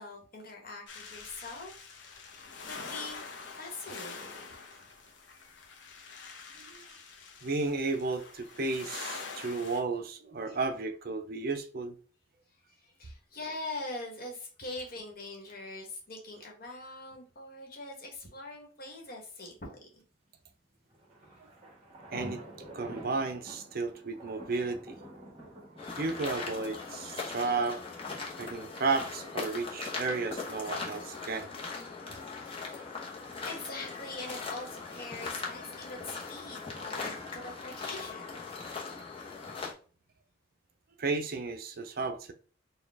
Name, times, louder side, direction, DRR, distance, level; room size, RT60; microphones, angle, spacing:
voice 1, 0.0-3.3 3.5-4.9 10.5-10.6 12.5-20.0 21.2-21.4 27.2-27.3 32.3-33.1 33.4-38.3, left 2 dB, 45° left, 1.3 m, -43 dB
sound 1, 0.9-9.8, left 4 dB, 60° left, 0.8 m, -45 dB
voice 2, 7.4-12.0 21.4-21.5 22.1-22.4 22.7-25.0 26.0-27.8 28.4-31.5 41.0-42.3, right 3 dB, 45° right, 0.5 m, -33 dB
sound 2, 20.9-28.5, right 1 dB, 30° right, 1.5 m, -48 dB
sound 3, 25.8-39.7, left 4 dB, 25° left, 0.8 m, -40 dB
4.2 x 2.3 x 3.4 m
head